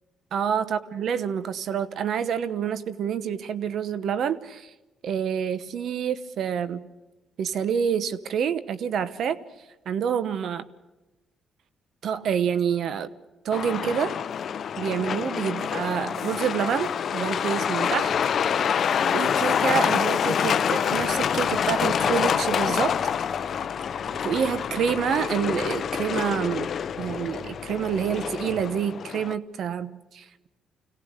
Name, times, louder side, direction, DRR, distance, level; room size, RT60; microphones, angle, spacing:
voice 1, 0.3-4.7 5.0-6.9 7.4-9.4 9.9-10.6 12.0-13.1 13.4-14.2 14.8-18.1 19.1-23.0 24.2-26.7 27.0-30.5, right 8 dB, 65° right, 1.1 m, -27 dB
Truck, 13.5-29.3, left 8 dB, 55° left, 0.7 m, -26 dB
sound 1, 17.1-17.5 17.9-19.0 19.4-20.5 20.9-22.0 22.4-23.5 23.9-25.0 25.4-26.5 26.9-27.9 28.3-29.0, left 1 dB, 5° right, 3.1 m, -50 dB
sound 2, 20.9-28.3, left 1 dB, 35° right, 7.0 m, -48 dB
26.0 x 17.0 x 6.6 m
cardioid pair, 90°, 0 cm